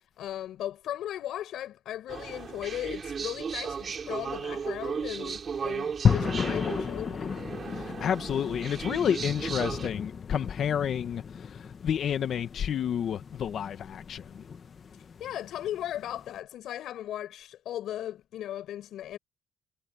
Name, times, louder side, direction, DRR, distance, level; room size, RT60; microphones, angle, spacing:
voice 1, 0.2-7.3 15.2-19.2, left 12 dB, 80° left, 5.2 m, -37 dB
sound 1, 2.1-9.9, right 6 dB, 45° right, 5.6 m, -36 dB
sound 2, 6.0-16.3, left 6 dB, 45° left, 1.8 m, -33 dB
voice 2, 7.7-14.5, left 8 dB, 65° left, 1.7 m, -30 dB
cardioid pair, 90°, 0 cm